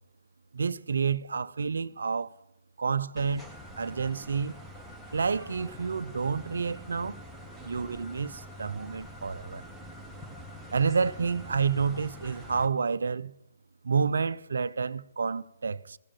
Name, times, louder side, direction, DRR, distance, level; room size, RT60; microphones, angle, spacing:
voice 1, 0.5-2.3 2.8-3.5 3.8-4.6 5.1-7.2 7.6-9.6 10.7-13.3 13.8-16.0, right 5 dB, 65° right, 0.5 m, -29 dB
sound 1, 3.2-12.7, equal, ahead, 1.3 m, -45 dB
16.0 x 8.7 x 7.2 m
figure-of-eight pair, 130°, 0 cm